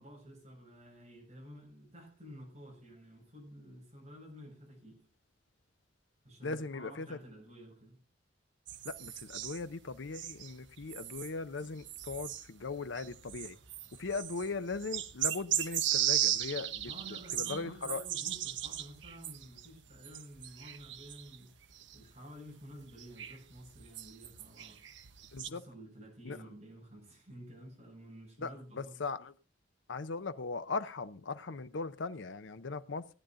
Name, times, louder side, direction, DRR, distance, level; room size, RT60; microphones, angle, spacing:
voice 1, 0.0-5.0 6.2-8.0 16.8-21.5 21.9-24.8 25.4-29.0, equal, 35° right, 7.1 m, -51 dB
voice 2, 6.4-7.2 8.8-13.6 14.0-18.0 25.3-25.6 26.2-26.4 28.4-29.3 29.9-33.1, left 4 dB, 80° left, 0.7 m, -39 dB
sound 1, 8.7-21.4 21.6-22.2 22.8-25.5, right 11 dB, 70° right, 1.0 m, -37 dB
16.5 x 10.5 x 3.8 m
head